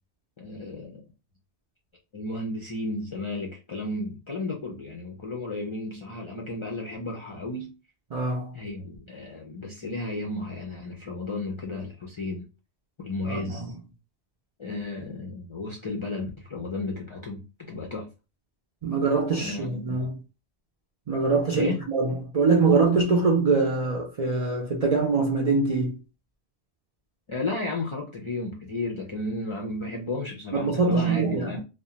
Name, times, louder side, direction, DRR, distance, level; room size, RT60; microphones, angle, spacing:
voice 1, 0.4-1.0 2.1-7.7 8.5-12.5 13.0-13.7 14.6-17.4 17.7-18.1 19.4-20.1 21.5-21.8 27.3-31.6, left 2 dB, 45° left, 0.4 m, -33 dB
voice 2, 8.1-8.6 13.3-13.7 18.8-20.2 21.1-26.0 30.5-31.6, right 4 dB, 50° right, 0.4 m, -24 dB
2.3 x 2.1 x 2.8 m
omnidirectional pair, 1.1 m